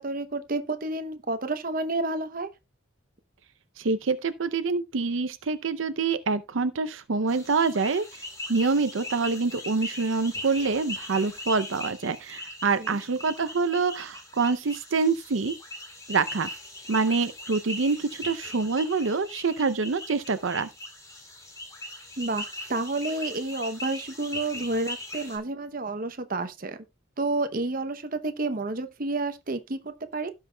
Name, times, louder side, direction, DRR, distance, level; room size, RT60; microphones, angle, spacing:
voice 1, 0.0-2.5 12.8-13.0 22.2-26.8 27.2-30.3, right 2 dB, 45° right, 0.8 m, -30 dB
voice 2, 3.8-8.2 8.5-15.5 16.1-16.5 16.9-20.7, right 4 dB, 75° right, 0.6 m, -26 dB
sound 1, 7.3-25.4, left 1 dB, 15° left, 2.2 m, -40 dB
17.0 x 5.6 x 2.3 m
head